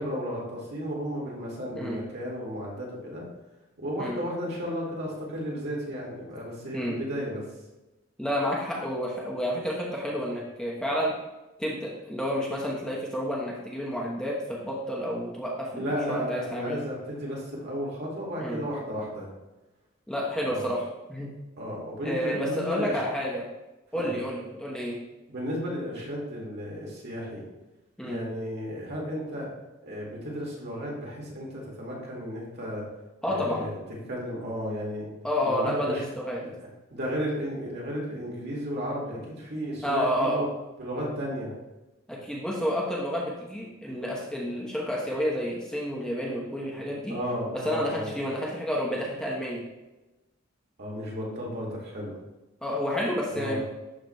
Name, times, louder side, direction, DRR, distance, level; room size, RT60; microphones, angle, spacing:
voice 1, 0.0-3.2 3.8-7.4 15.8-19.3 20.4-20.6 21.6-23.0 23.9-24.1 25.3-27.4 28.0-29.5 29.8-32.8 33.2-33.8 34.1-35.1 35.4-36.0 36.4-36.5 36.9-40.5 40.8-41.5 47.1-48.1 50.8-52.1 53.3-53.6, equal, 55° right, -4 dB, 2.0 m, -33 dB
voice 2, 8.2-11.1 11.6-16.8 18.4-18.6 20.1-21.3 22.0-23.5 23.9-25.0 28.0-28.2 33.2-33.7 35.2-36.4 39.8-40.5 42.1-47.1 47.5-49.6 52.6-53.6, equal, 5° left, -4 dB, 1.0 m, -30 dB
12.0 x 4.6 x 2.3 m, 1.0 s
head